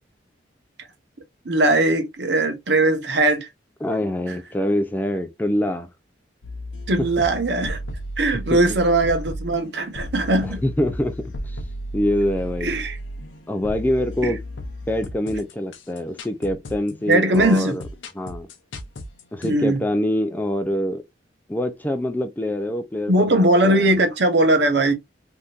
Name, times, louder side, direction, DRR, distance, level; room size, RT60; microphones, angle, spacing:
voice 1, 1.4-3.5 4.3-4.4 6.9-7.8 8.2-10.6 12.6-13.0 14.2-14.3 17.1-17.8 19.4-19.8 23.1-24.9, right 2 dB, 65° right, 0.8 m, -19 dB
voice 2, 3.8-5.9 7.0-7.1 8.5-8.6 10.4-11.6 11.9-12.8 13.5-14.4 14.9-17.8 18.1-18.5 19.3-21.0 21.5-23.9, left 1 dB, 10° left, 0.3 m, -25 dB
sound 1, 6.4-19.5, equal, 90° left, 0.7 m, -34 dB
3.5 x 2.7 x 2.3 m
head